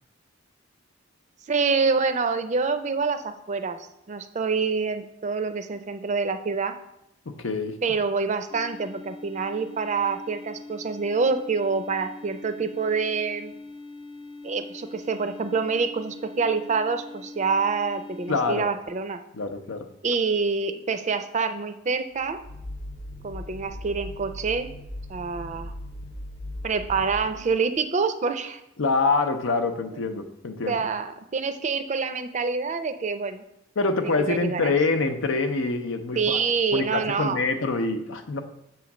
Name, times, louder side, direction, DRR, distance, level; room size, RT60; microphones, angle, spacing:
voice 1, 1.5-3.8 4.1-6.8 7.8-13.5 14.4-19.2 20.0-22.4 23.2-24.7 25.1-25.7 26.6-28.6 30.7-33.4 34.0-34.7 36.2-37.4, right 4 dB, 40° right, 9 dB, 0.4 m, -26 dB
voice 2, 7.3-7.8 18.3-18.7 19.3-19.9 28.8-30.9 33.8-36.4 36.7-38.4, left 3 dB, 85° left, 7 dB, 0.7 m, -25 dB
sound 1, 8.5-18.6, left 3 dB, 30° left, 0.4 m, -42 dB
sound 2, 22.2-27.6, left 1 dB, 50° left, 0.8 m, -38 dB
7.0 x 3.1 x 5.9 m, 0.84 s
head